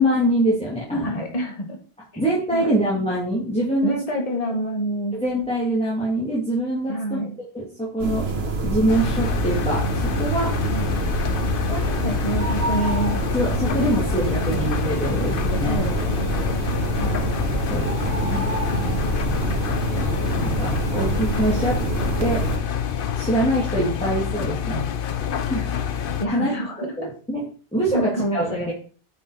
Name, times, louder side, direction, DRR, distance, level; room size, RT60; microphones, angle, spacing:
voice 1, 0.0-1.2 2.2-3.9 5.1-7.2 7.5-8.3 8.6-10.5 13.3-15.9 17.7-18.5 18.8-19.5 20.4-21.8 22.2-22.5 23.1-24.8 25.5-28.7, right 1 dB, 5° left, -6 dB, 2.7 m, -24 dB
voice 2, 0.9-1.8 2.5-2.8 3.8-5.1 6.9-7.3 10.6-11.0 11.4-14.7 15.1-17.3 26.2-27.1 27.9-28.7, equal, 35° left, 2 dB, 1.8 m, -29 dB
sound 1, 8.0-22.6, right 3 dB, 65° right, 1.8 m, -26 dB
Engine, 8.9-26.3, left 8 dB, 60° left, 0.9 m, -27 dB
9.2 x 6.0 x 5.0 m, 0.40 s
omnidirectional pair, 1.1 m